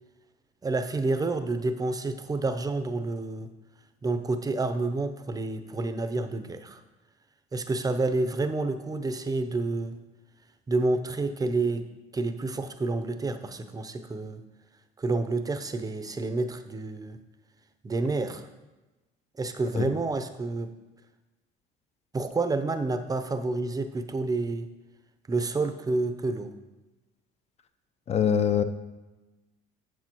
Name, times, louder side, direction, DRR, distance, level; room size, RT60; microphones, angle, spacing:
voice 1, 0.6-3.5 4.0-6.8 7.5-10.0 10.7-11.9 12.1-14.4 15.0-17.2 17.8-18.5 19.4-20.7 22.1-24.7 25.3-26.5, right 3 dB, 20° right, 9 dB, 0.7 m, -29 dB
voice 2, 28.1-28.6, left 8 dB, 35° left, 11 dB, 0.6 m, -23 dB
8.3 x 7.2 x 3.0 m, 1.1 s
supercardioid pair, 90°, 19 cm